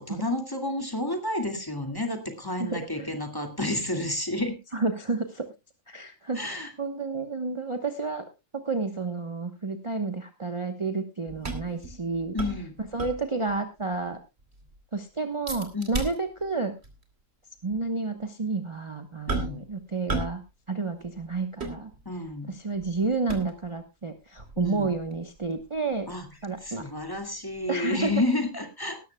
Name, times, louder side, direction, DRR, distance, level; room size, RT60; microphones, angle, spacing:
voice 1, 0.0-4.6 6.4-6.7 12.3-12.8 15.7-16.0 19.3-19.6 22.1-22.5 24.6-24.9 26.1-26.2 26.6-29.0, left 2 dB, 15° left, 5 dB, 2.2 m, -30 dB
voice 2, 2.6-3.1 4.7-5.5 5.9-8.2 8.5-12.4 12.9-14.2 14.9-16.7 17.6-20.4 20.7-21.9 22.5-26.1 26.4-26.9 27.7-28.1, right 3 dB, 25° right, 5 dB, 1.1 m, -30 dB
sound 1, 11.3-13.6 13.9-14.0 14.4-14.8 15.5-16.5 16.8-17.0 17.7-17.8 19.3-19.7 20.1-20.5 20.7-22.3 22.8-23.8 24.4-27.2 27.5-27.6, right 2 dB, 55° right, 2.7 m, -35 dB
18.5 x 13.0 x 2.3 m, 0.25 s
omnidirectional pair, 1.3 m